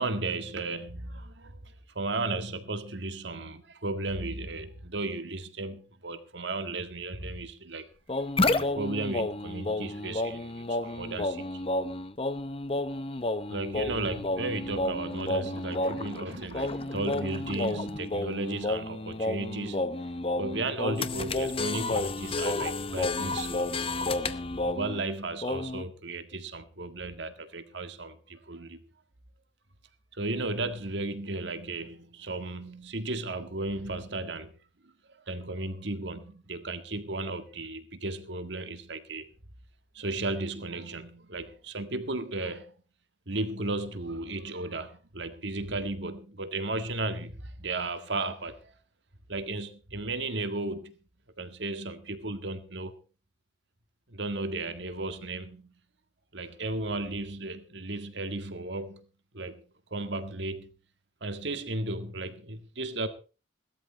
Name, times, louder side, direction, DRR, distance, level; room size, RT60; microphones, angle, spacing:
voice 1, 0.0-1.6 1.9-7.9 8.5-11.6 13.5-19.9 20.4-23.9 24.6-28.8 30.1-34.5 34.8-34.9 35.3-39.3 39.9-42.7 43.3-48.6 49.3-51.0 51.4-52.9 54.1-55.7 56.3-59.0 59.3-59.6 59.9-60.7 61.2-63.1, right 2 dB, 70° right, 1.8 m, -35 dB
sound 1, 8.1-25.1 25.4-25.8, left 2 dB, 30° left, 0.8 m, -31 dB
17.5 x 12.5 x 4.3 m
head